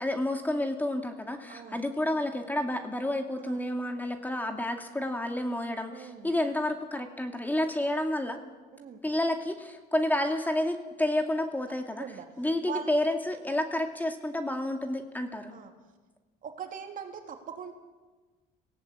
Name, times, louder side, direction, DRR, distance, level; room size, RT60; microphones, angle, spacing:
voice 1, 0.0-8.4 9.0-12.0 12.4-15.5, left 1 dB, 10° left, 5 dB, 2.3 m, -30 dB
voice 2, 1.5-1.8 3.4-3.6 5.9-6.3 8.8-9.0 12.0-12.3 12.7-12.9 15.5-15.7 16.4-17.7, right 7 dB, 55° right, 4 dB, 3.3 m, -40 dB
24.5 x 17.5 x 8.4 m, 1.3 s
cardioid pair, 110°, 17 cm